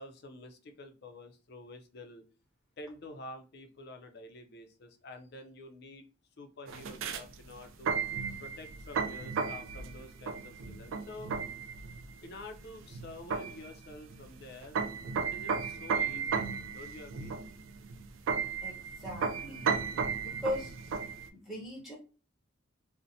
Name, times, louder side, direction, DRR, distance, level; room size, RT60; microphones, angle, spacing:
voice 1, 0.0-2.2 2.8-6.1 6.4-7.9 8.4-11.3 12.2-14.8 15.2-17.3, left 2 dB, 55° left, 6 dB, 0.5 m, -48 dB
sound 1, 6.7-21.3, right 5 dB, 75° right, 0.3 m, -35 dB
voice 2, 18.6-19.7 20.2-20.7 21.3-22.0, left 1 dB, ahead, -3 dB, 0.8 m, -39 dB
2.6 x 2.0 x 2.6 m, 0.35 s
head